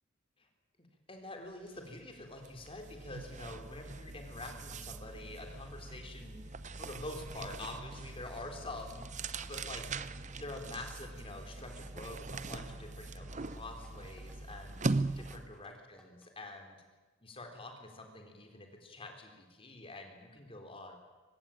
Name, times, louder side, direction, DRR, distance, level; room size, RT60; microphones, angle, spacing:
voice 1, 1.1-6.5 6.8-9.8 10.4-14.9 15.2-16.8 17.2-21.0, left 2 dB, 25° left, 4 dB, 4.1 m, -46 dB
sound 1, 1.7-1.9 2.2-15.6, right 3 dB, 35° right, 0.8 m, -41 dB
sound 2, 9.4-16.3, equal, 5° left, 3.1 m, -63 dB
24.0 x 20.0 x 8.8 m, 1.3 s
head